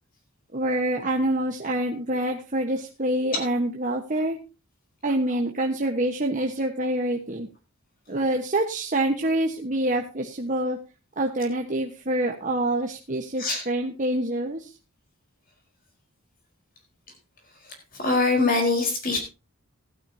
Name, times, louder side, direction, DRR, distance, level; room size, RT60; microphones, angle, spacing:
voice 1, 0.5-4.4 5.0-7.5 8.1-10.8 11.2-14.7, right 1 dB, 35° right, 2 dB, 1.2 m, -26 dB
voice 2, 17.6-19.2, left 3 dB, 40° left, 3 dB, 4.1 m, -23 dB
16.5 x 12.0 x 2.8 m, 0.30 s
head